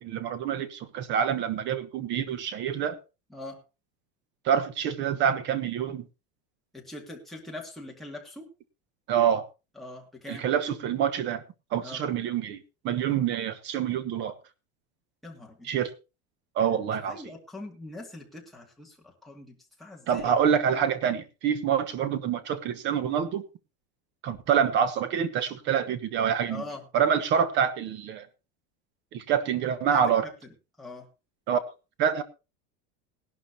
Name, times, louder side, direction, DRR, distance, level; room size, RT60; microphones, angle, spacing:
voice 1, 0.0-3.0 4.4-6.1 9.1-9.4 10.3-11.4 11.7-12.6 12.8-14.4 15.6-15.9 16.5-17.2 20.1-23.4 24.2-26.6 26.9-28.3 29.1-30.2 31.5-31.6 32.0-32.2, right 8 dB, 35° right, 12 dB, 1.1 m, -26 dB
voice 2, 3.3-3.6 6.7-8.4 9.8-10.5 11.8-12.0 15.2-15.7 16.7-20.3 20.7-20.8 26.5-26.9 29.9-31.1, left 2 dB, ahead, -2 dB, 2.2 m, -43 dB
18.5 x 12.0 x 2.8 m, 0.29 s
cardioid pair, 175°, 31 cm